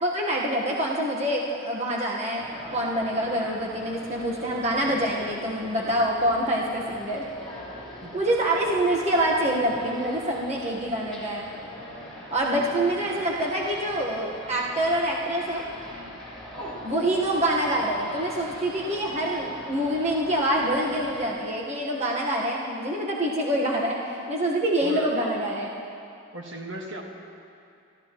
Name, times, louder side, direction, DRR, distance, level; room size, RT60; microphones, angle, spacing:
voice 1, 0.0-2.4 2.7-7.2 8.1-11.5 12.3-15.6 16.8-25.7, right 1 dB, 30° right, -3 dB, 1.3 m, -26 dB
sound 1, 2.3-21.4, equal, 5° left, 3.7 m, -42 dB
voice 2, 12.5-13.3 16.6-16.9 24.8-25.1 26.3-27.0, right 1 dB, 60° right, 1 dB, 1.6 m, -39 dB
23.5 x 15.0 x 3.0 m, 2.5 s
head